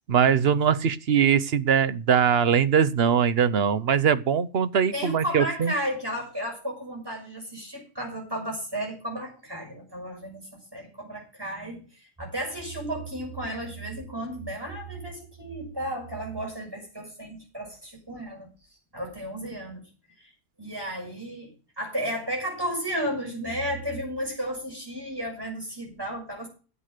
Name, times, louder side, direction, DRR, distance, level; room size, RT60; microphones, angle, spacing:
voice 1, 0.1-5.7, right 7 dB, 65° right, 15 dB, 1.0 m, -21 dB
voice 2, 4.9-18.5 18.9-19.8 20.2-20.3 20.6-26.5, equal, 20° right, 0 dB, 6.5 m, -33 dB
11.5 x 8.3 x 6.5 m, 0.35 s
omnidirectional pair, 1.2 m